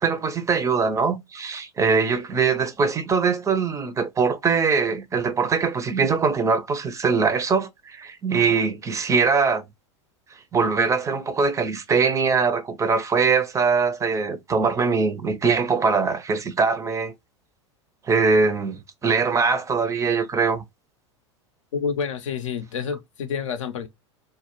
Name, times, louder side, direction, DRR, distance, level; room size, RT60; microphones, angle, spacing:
voice 1, 0.0-9.6 10.5-17.1 18.1-20.6, right 5 dB, 20° right, 0.4 m, -22 dB
voice 2, 21.7-23.9, left 6 dB, 80° left, 0.5 m, -28 dB
2.1 x 2.0 x 2.9 m
hypercardioid pair, 90°, 16 cm